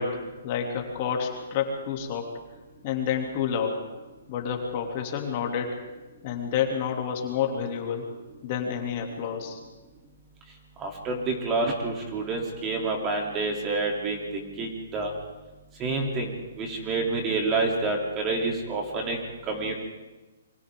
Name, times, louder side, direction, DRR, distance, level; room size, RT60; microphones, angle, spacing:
voice 1, 0.0-2.3 2.8-3.8 4.3-5.8 6.2-8.1 8.4-9.6, left 7 dB, 35° left, 1 dB, 2.9 m, -29 dB
voice 2, 10.8-15.1 15.8-16.3 16.6-19.2 19.5-19.7, right 3 dB, 20° right, 1 dB, 3.3 m, -28 dB
28.0 x 24.0 x 3.9 m, 1.2 s
hypercardioid pair, 160°, 0 cm